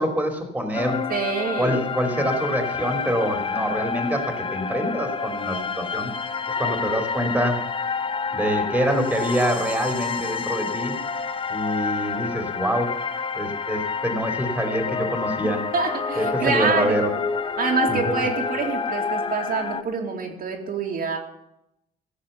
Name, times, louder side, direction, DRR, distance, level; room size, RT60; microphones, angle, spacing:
voice 1, 0.0-1.0 1.6-6.1 6.6-7.6 8.3-10.9 11.5-13.0 13.3-15.7 16.2-17.1 17.9-18.2, equal, 5° right, 4 dB, 3.1 m, -25 dB
sound 1, 0.7-19.8, left 5 dB, 25° left, 0.8 m, -29 dB
voice 2, 1.1-1.8 15.7-17.1 17.6-21.2, right 5 dB, 50° right, 0 dB, 2.6 m, -26 dB
15.5 x 7.5 x 6.9 m, 0.81 s
cardioid pair, 115°, 20 cm